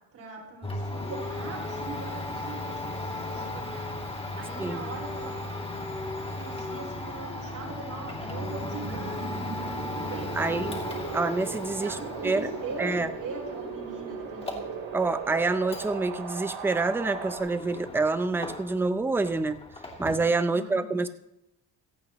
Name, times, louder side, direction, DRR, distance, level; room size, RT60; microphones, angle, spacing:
voice 1, 0.1-3.8 4.3-5.3 6.4-9.3 9.9-10.7 11.5-14.7 20.5-20.9, right 3 dB, 50° right, -5 dB, 4.9 m, -41 dB
Domestic sounds home sounds, 0.6-18.9 19.2-20.3, left 2 dB, 15° left, 2.6 m, -37 dB
voice 2, 4.6-4.9 10.3-10.8 11.1-12.0 12.2-12.5 12.8-13.1 14.9-19.6 20.0-21.1, right 3 dB, 5° right, 11 dB, 0.3 m, -27 dB
Wind, 7.4-17.4, right 5 dB, 90° right, 3.4 m, -38 dB
26.0 x 8.8 x 2.9 m, 0.87 s
cardioid pair, 165°, 44 cm